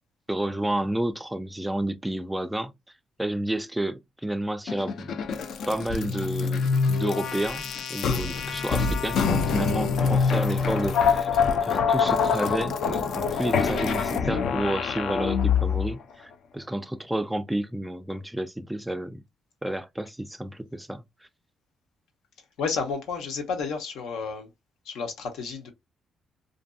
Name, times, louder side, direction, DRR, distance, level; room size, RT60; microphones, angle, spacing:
voice 1, 0.3-2.7 3.2-5.2 5.7-19.2 19.6-21.0, right 1 dB, 5° right, 0.3 m, -30 dB
sound 1, 4.7-15.9, left 5 dB, 65° left, 0.4 m, -25 dB
voice 2, 22.6-24.5 24.8-25.7, left 5 dB, 85° left, 0.8 m, -31 dB
2.6 x 2.5 x 2.2 m
cardioid pair, 90°, 0 cm